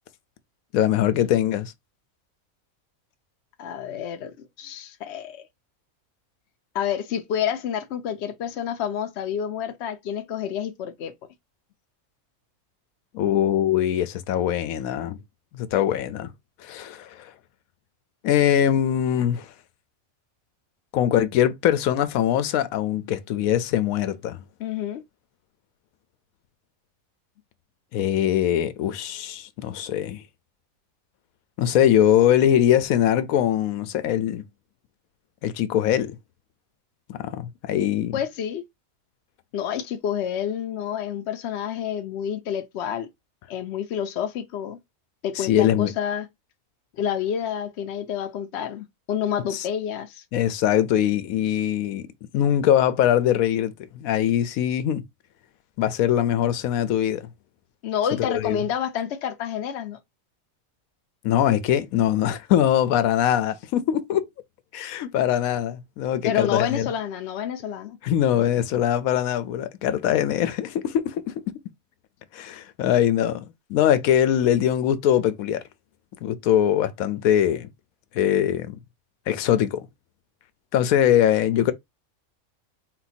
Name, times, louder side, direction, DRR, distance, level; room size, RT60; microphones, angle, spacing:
voice 1, 0.7-1.7 13.1-15.2 15.5-16.3 16.6-17.3 18.2-19.5 20.9-24.4 27.9-30.2 31.6-34.4 35.4-36.2 37.1-38.2 45.4-45.9 49.5-49.7 50.3-52.1 52.3-55.0 55.8-57.3 58.3-58.6 61.2-64.3 64.7-66.9 68.0-71.6 72.3-75.6 76.2-77.7 78.1-78.8 79.3-79.9 80.7-81.7, left 10 dB, 85° left, 1.0 m, -22 dB
voice 2, 3.6-5.4 6.7-11.1 24.6-25.0 38.1-38.6 39.5-43.1 43.5-44.8 45.2-46.3 47.0-50.2 57.8-60.0 66.2-68.0, left 9 dB, 60° left, 0.8 m, -29 dB
4.2 x 2.2 x 4.1 m
omnidirectional pair, 1.5 m